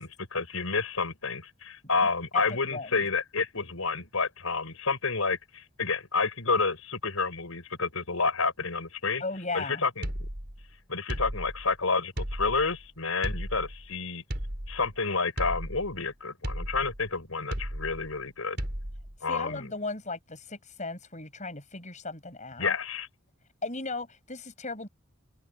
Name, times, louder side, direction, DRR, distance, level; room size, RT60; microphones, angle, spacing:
voice 1, 0.0-9.2 9.5-10.1 10.9-14.2 14.7-18.6 19.2-19.7 22.6-23.1, left 4 dB, 80° left, 5.2 m, -29 dB
voice 2, 2.7-3.1 9.2-9.8 19.3-22.8 23.6-24.9, left 3 dB, 35° left, 6.7 m, -36 dB
sound 1, 10.0-10.7 11.1-11.8 12.2-12.9 13.2-13.9 14.3-15.0 15.4-16.1 16.4-17.1 17.5-18.2 18.6-19.2, equal, 50° right, 4.6 m, -35 dB
head